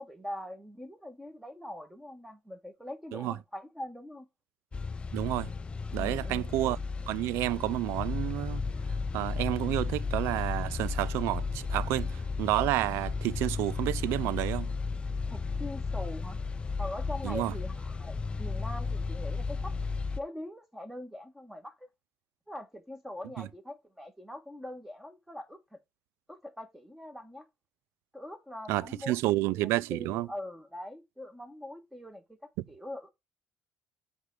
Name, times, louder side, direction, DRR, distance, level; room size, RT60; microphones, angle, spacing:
voice 1, 0.0-4.3 5.9-6.5 15.3-16.4 16.8-19.7 20.2-21.9 22.5-25.8 26.3-27.5 28.1-33.1, left 1 dB, 5° right, 1.7 m, -43 dB
sound 1, 4.7-20.2, left 4 dB, 25° left, 0.6 m, -34 dB
voice 2, 5.1-5.5 5.9-6.8 7.1-8.6 9.1-14.7 17.2-17.5 23.4-23.5 28.7-30.3, right 16 dB, 80° right, 0.3 m, -30 dB
8.0 x 3.7 x 4.9 m
cardioid pair, 95°, 4 cm